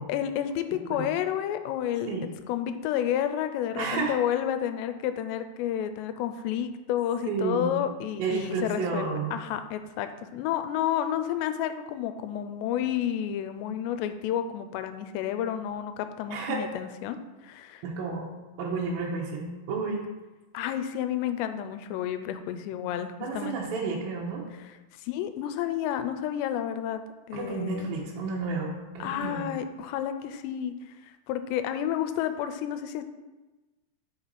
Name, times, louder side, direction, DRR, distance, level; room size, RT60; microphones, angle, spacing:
voice 1, 0.1-2.1 2.5-17.2 17.4-17.8 20.5-23.6 25.0-27.0 27.3-28.0 29.0-30.7 31.0-33.0, left 10 dB, 85° left, 9 dB, 2.7 m, -30 dB
voice 2, 3.8-4.2 7.3-7.7 8.2-9.4 16.3-16.6 17.8-18.3 18.6-20.1 23.2-24.4 27.3-29.5, right 4 dB, 70° right, -2 dB, 2.4 m, -31 dB
7.7 x 6.1 x 4.1 m, 1.1 s
omnidirectional pair, 4.9 m